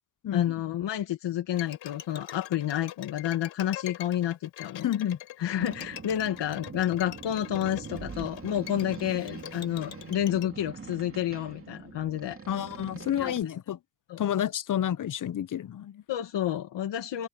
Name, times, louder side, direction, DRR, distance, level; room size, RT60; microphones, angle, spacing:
voice 1, 0.3-4.9 5.4-12.4 13.2-13.3 14.1-14.2 16.1-17.3, left 11 dB, 75° left, 1.9 m, -30 dB
Bowed string instrument, 1.5-10.5, left 13 dB, 90° left, 4.5 m, -44 dB
voice 2, 4.8-5.2 12.5-13.8 14.2-16.0, left 10 dB, 45° left, 0.7 m, -29 dB
Boat Water vehicle, 5.6-13.4, right 5 dB, 30° right, 2.5 m, -43 dB
cardioid pair, 90°, 43 cm